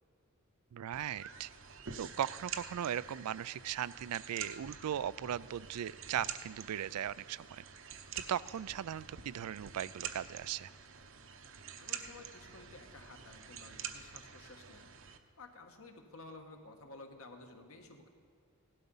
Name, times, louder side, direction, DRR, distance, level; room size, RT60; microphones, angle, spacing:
voice 1, 0.7-1.5 2.0-7.6 8.2-10.7, right 10 dB, 90° right, 20 dB, 0.4 m, -38 dB
sound 1, 0.9-15.2, right 7 dB, 60° right, 0.8 m, -47 dB
voice 2, 11.8-14.9 15.4-18.1, left 2 dB, 70° left, 4 dB, 1.5 m, -53 dB
17.0 x 12.0 x 5.5 m, 2.4 s
head